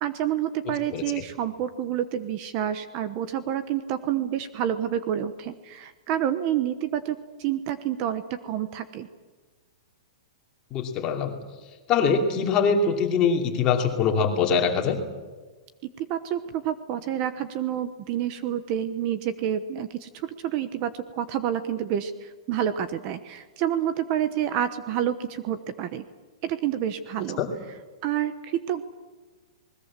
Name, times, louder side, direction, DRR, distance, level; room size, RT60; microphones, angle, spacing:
voice 1, 0.0-9.1 16.0-26.0 26.4-27.4 28.0-28.8, right 10 dB, 30° right, 11 dB, 1.0 m, -28 dB
voice 2, 0.9-1.2 10.7-11.3 11.9-15.0 27.4-27.5, left 5 dB, 20° left, 3 dB, 2.8 m, -23 dB
28.5 x 20.5 x 7.5 m, 1.3 s
hypercardioid pair, 170°, 3 cm